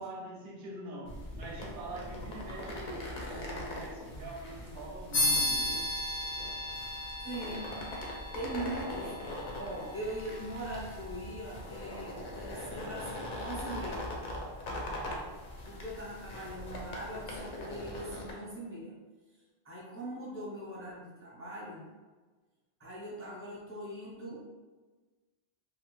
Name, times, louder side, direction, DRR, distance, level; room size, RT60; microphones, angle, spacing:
voice 1, 0.0-5.9, right 2 dB, 60° right, -1 dB, 0.7 m, -44 dB
sound 1, 1.0-18.3, left 1 dB, 55° left, 0.6 m, -41 dB
sound 2, 5.1-15.1, left 1 dB, 80° left, 0.9 m, -37 dB
voice 2, 7.2-7.7 8.3-9.1 9.5-14.1 15.6-18.9 19.6-21.9 22.8-24.5, right 1 dB, 15° right, -6 dB, 0.7 m, -41 dB
2.8 x 2.0 x 3.0 m, 1.3 s
omnidirectional pair, 1.1 m